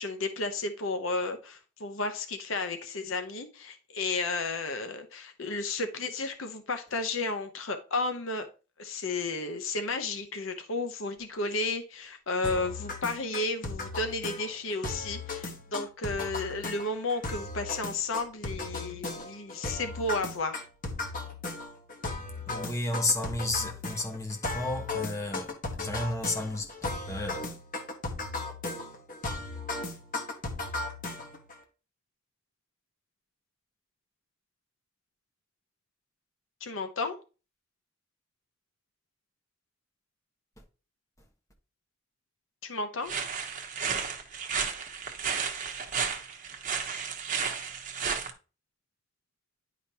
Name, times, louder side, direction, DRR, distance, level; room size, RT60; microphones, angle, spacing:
voice 1, 0.0-8.5 8.8-20.6 36.6-37.2 42.6-43.1, left 3 dB, 75° left, 0.9 m, -33 dB
sound 1, 12.4-31.5, left 3 dB, 45° left, 1.2 m, -36 dB
voice 2, 22.5-25.5 25.8-26.7 27.1-27.5, left 2 dB, 15° left, 1.3 m, -32 dB
sound 2, 43.1-48.3, right 6 dB, 40° right, 1.0 m, -33 dB
10.0 x 5.0 x 2.9 m
head